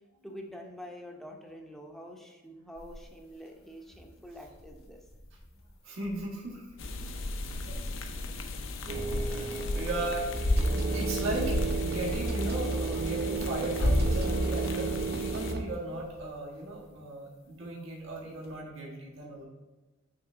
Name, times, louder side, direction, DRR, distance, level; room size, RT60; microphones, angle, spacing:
voice 1, 0.2-5.0, equal, ahead, 1 dB, 0.7 m, -46 dB
sound 1, 2.8-18.6, left 1 dB, 80° left, 1.2 m, -38 dB
voice 2, 5.8-7.1 7.7-7.8 8.0-8.1 8.9-19.4, right 2 dB, 70° right, -4 dB, 1.5 m, -37 dB
sound 2, 6.8-15.5, left 2 dB, 65° left, 0.6 m, -35 dB
sound 3, 8.9-15.6, right 3 dB, 50° right, 0.6 m, -32 dB
6.1 x 3.3 x 4.9 m, 1.2 s
head